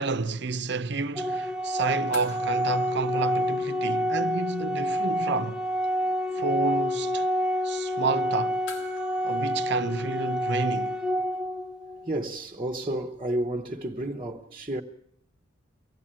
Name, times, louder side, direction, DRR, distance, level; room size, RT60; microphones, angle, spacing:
voice 1, 0.0-5.6 6.4-7.3 7.6-8.6 9.2-11.0, right 3 dB, 65° right, 0.8 m, -30 dB
Organ, 1.2-12.1, equal, 5° right, 0.8 m, -28 dB
sound 1, 2.1-4.8 5.0-5.1 8.7-11.3 13.4-13.5, left 1 dB, 85° left, 2.1 m, -47 dB
voice 2, 6.0-6.5 7.3-7.5 11.9-14.8, right 1 dB, 25° right, 1.0 m, -32 dB
24.0 x 16.5 x 8.8 m
head